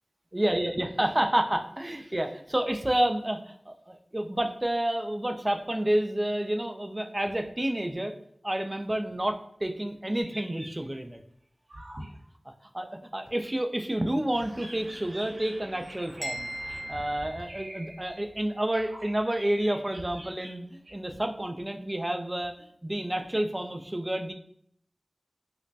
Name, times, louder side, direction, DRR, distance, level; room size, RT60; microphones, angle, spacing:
voice 1, 0.3-8.1 8.4-11.2 12.7-16.5 16.9-22.6 22.8-24.3, right 1 dB, 30° right, 5 dB, 0.4 m, -29 dB
sound 1, 10.2-11.0 11.7-12.2 13.2-13.3 14.3-18.4 18.7-21.2, right 1 dB, 85° right, 0.9 m, -45 dB
sound 2, 16.2-18.2, equal, 20° left, 0.9 m, -39 dB
5.1 x 2.1 x 2.7 m, 0.67 s
wide cardioid pair, 55°, 0 cm